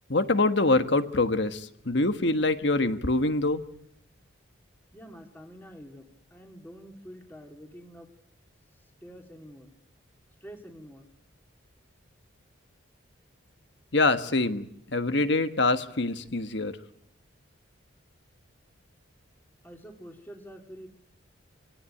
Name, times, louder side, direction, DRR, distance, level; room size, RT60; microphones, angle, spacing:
voice 1, 0.1-3.6 13.9-16.8, left 2 dB, 60° left, 10 dB, 1.4 m, -25 dB
voice 2, 4.9-8.1 8.7-9.7 10.4-11.0 19.6-20.9, equal, 10° left, 3 dB, 2.5 m, -47 dB
25.0 x 18.0 x 9.9 m, 0.75 s
head